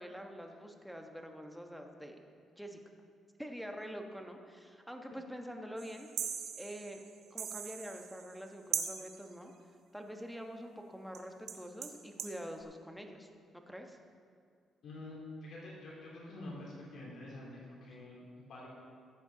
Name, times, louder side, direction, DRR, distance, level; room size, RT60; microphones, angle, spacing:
voice 1, 0.0-2.2 2.5-2.8 3.4-6.1 6.6-7.0 7.3-9.5 9.9-13.3 13.5-14.0, equal, ahead, 3 dB, 1.2 m, -46 dB
sound 1, 5.8-8.5 8.7-9.3 11.1-11.2 11.5-12.4, right 8 dB, 75° right, 0.9 m, -40 dB
voice 2, 14.8-15.1 15.4-18.7, left 1 dB, 65° left, -5 dB, 3.2 m, -47 dB
15.0 x 8.3 x 3.9 m, 2.2 s
cardioid pair, 90°, 0 cm